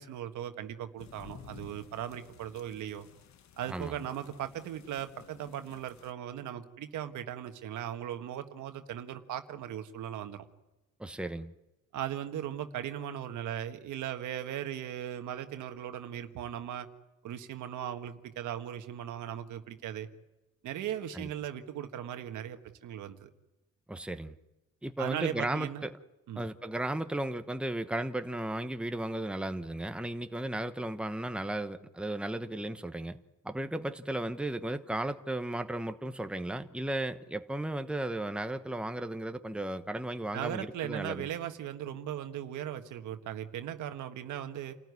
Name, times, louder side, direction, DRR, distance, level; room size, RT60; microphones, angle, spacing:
voice 1, 0.0-3.1 3.6-10.4 11.9-16.9 17.2-20.1 20.6-23.3 25.0-25.8 26.3-26.4 40.3-44.7, right 10 dB, 80° right, 1.5 m, -38 dB
sound 1, 1.0-6.1, left 8 dB, 65° left, 1.3 m, -54 dB
voice 2, 3.7-4.0 11.0-11.5 21.1-21.3 23.9-24.3 24.8-25.9 26.4-33.2 33.4-41.3, right 1 dB, 5° right, 1.1 m, -35 dB
28.5 x 14.5 x 9.7 m
cardioid pair, 90°, 30 cm